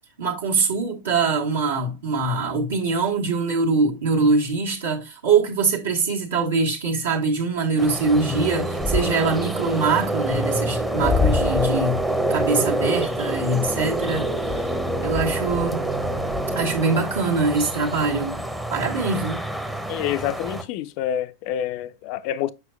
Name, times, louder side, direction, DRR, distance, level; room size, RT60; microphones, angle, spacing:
voice 1, 0.2-12.0 12.3-14.3 14.6-14.7 15.0-15.9 16.5-18.4 18.7-19.4, right 4 dB, 65° right, 1.4 m, -23 dB
sound 1, 7.8-20.6, equal, 5° right, 0.7 m, -26 dB
voice 2, 19.9-22.5, left 11 dB, 45° left, 0.4 m, -27 dB
7.4 x 5.8 x 2.3 m
figure-of-eight pair, 90°, 0 cm